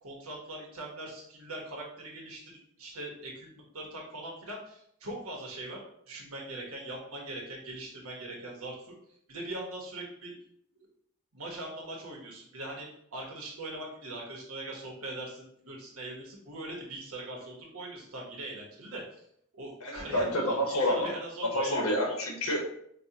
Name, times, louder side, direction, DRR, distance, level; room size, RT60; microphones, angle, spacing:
voice 1, 0.0-5.8 6.1-8.9 9.3-10.3 10.8-10.9 11.3-19.0 19.5-21.8, right 2 dB, 80° right, -1 dB, 1.1 m, -41 dB
voice 2, 19.8-21.1 21.4-22.7, left 1 dB, 75° left, 1 dB, 0.9 m, -28 dB
5.2 x 2.2 x 2.7 m, 0.70 s
head